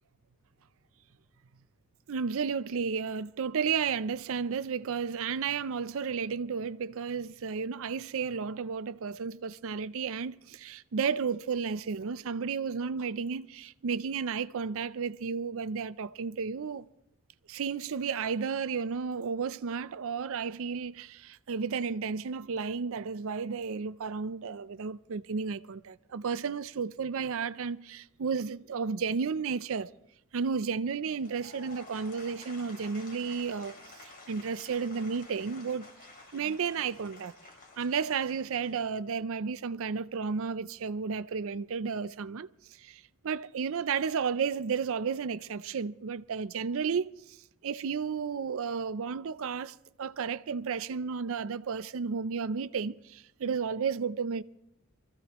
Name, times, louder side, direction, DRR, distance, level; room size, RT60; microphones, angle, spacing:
voice 1, 2.1-16.9 17.5-29.9 30.3-33.8 34.0-35.9 36.3-37.3 37.8-42.5 42.8-47.4 47.6-54.4, right 5 dB, 65° right, 0.5 m, -33 dB
Applause / Crowd, 31.0-39.2, left 3 dB, 40° left, 2.6 m, -51 dB
24.5 x 15.0 x 3.0 m
head